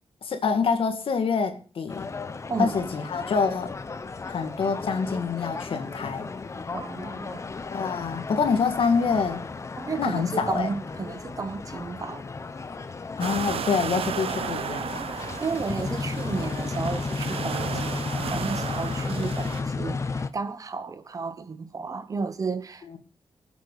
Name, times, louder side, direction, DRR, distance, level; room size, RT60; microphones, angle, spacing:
voice 1, 0.2-2.1 2.6-3.7 4.3-6.3 7.7-9.4 10.0-10.7 13.2-15.1, left 5 dB, 65° left, 2.3 m, -26 dB
sound 1, 1.9-20.3, left 4 dB, 30° left, 0.8 m, -34 dB
voice 2, 6.7-7.5 9.8-12.3 15.4-23.0, right 4 dB, 35° right, 1.0 m, -33 dB
sound 2, 13.2-19.6, right 8 dB, 75° right, 0.7 m, -34 dB
24.5 x 8.4 x 4.1 m
wide cardioid pair, 175°, 10 cm